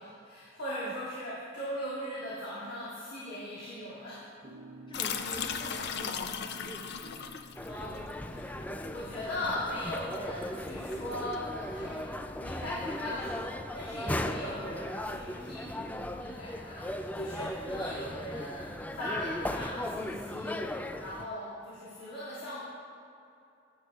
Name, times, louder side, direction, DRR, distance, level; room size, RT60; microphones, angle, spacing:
voice 1, 0.0-4.2 7.7-22.6, left 1 dB, 80° left, -10 dB, 2.5 m, -39 dB
sound 1, 4.4-10.8, right 1 dB, 45° right, 1.0 m, -54 dB
sound 2, 4.9-11.3, left 7 dB, 60° left, 0.5 m, -38 dB
voice 2, 4.9-7.4 17.4-17.5, equal, 25° left, 0 dB, 1.1 m, -46 dB
sound 3, 7.6-21.2, left 1 dB, 10° left, 0.3 m, -37 dB
16.5 x 9.2 x 2.4 m, 2.7 s
head